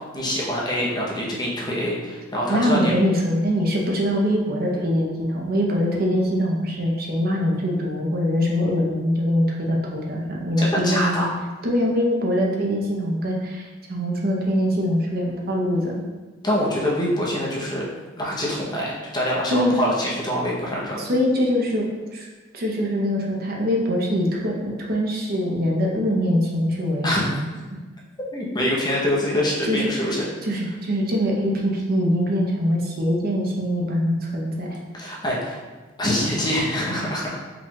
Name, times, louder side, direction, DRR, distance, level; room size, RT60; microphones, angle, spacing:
voice 1, 0.0-2.9 10.6-11.3 16.4-17.9 18.2-21.1 27.0-27.2 28.3-30.3 34.9-35.6 36.0-37.4, equal, 25° left, -4 dB, 0.8 m, -25 dB
voice 2, 2.5-11.2 11.6-13.6 13.9-15.9 19.5-19.8 21.0-22.3 22.5-27.4 29.7-29.9 30.4-34.8, equal, 55° right, -2 dB, 0.8 m, -23 dB
4.8 x 2.4 x 3.7 m, 1.3 s
head